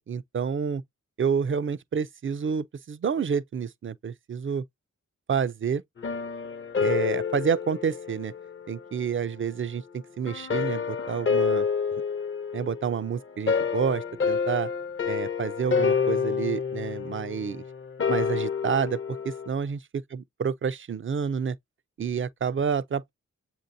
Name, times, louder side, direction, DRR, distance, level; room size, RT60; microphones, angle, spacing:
voice 1, 0.1-0.8 1.2-4.6 5.3-5.8 6.8-8.3 8.7-11.7 12.5-14.7 15.1-17.6 18.1-21.6 22.0-23.1, right 7 dB, 45° right, 0.4 m, -29 dB
sound 1, 6.0-8.9 10.3-19.5, left 6 dB, 40° left, 0.6 m, -28 dB
7.4 x 2.7 x 2.6 m
cardioid pair, 45°, 30 cm